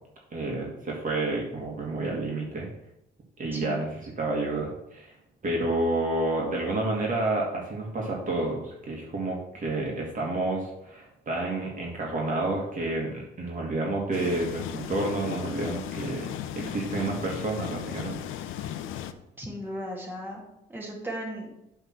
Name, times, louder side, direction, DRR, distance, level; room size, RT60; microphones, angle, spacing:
voice 1, 0.3-2.7 3.4-5.1 5.4-16.3 16.6-18.2, right 2 dB, 40° right, -2 dB, 1.8 m, -30 dB
sound 1, 14.1-19.1, left 10 dB, 90° left, 0.6 m, -36 dB
voice 2, 16.6-16.9 19.4-20.4 20.7-21.5, equal, 10° right, -2 dB, 2.3 m, -36 dB
7.9 x 3.7 x 6.0 m, 0.85 s
cardioid pair, 90°, 20 cm